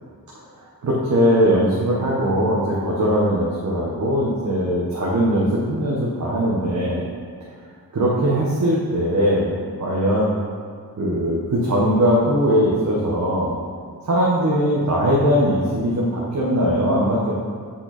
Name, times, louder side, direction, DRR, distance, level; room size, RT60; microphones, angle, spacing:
voice 1, 0.8-7.0 7.9-9.5 9.8-10.3 11.0-13.5 14.0-17.3, equal, 50° right, -6 dB, 1.4 m, -20 dB
9.0 x 5.7 x 4.4 m, 2.1 s
wide cardioid pair, 145°, 36 cm